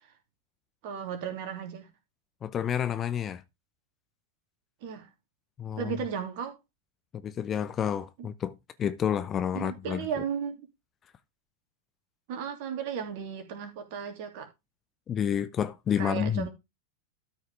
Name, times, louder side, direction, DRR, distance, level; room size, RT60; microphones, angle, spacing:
voice 1, 0.8-1.9 4.8-5.1 5.8-6.5 9.5-10.6 12.3-14.5 16.0-16.5, right 7 dB, 45° right, 2.8 m, -35 dB
voice 2, 2.4-3.4 5.6-5.9 7.1-8.5 8.8-10.1 15.1-16.5, left 9 dB, 25° left, 0.8 m, -29 dB
13.0 x 5.5 x 3.5 m
figure-of-eight pair, 90°, 0 cm